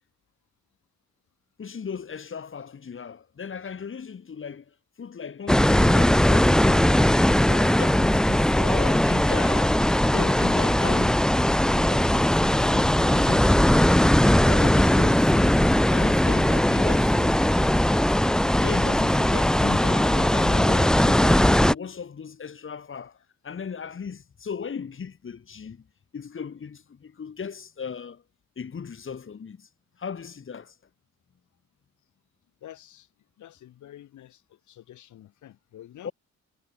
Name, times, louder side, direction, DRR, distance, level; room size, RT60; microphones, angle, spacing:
voice 1, 1.6-7.2 7.5-11.3 11.6-13.5 14.4-17.4 18.6-23.2 23.4-25.9 26.1-28.2 28.6-29.7 30.0-30.7 36.0-36.1, left 6 dB, 40° left, 5.5 m, -37 dB
sound 1, 5.5-21.7, left 1 dB, ahead, 0.4 m, -20 dB
voice 2, 32.6-33.1 33.4-36.1, left 12 dB, 75° left, 4.5 m, -48 dB
cardioid pair, 90°, 30 cm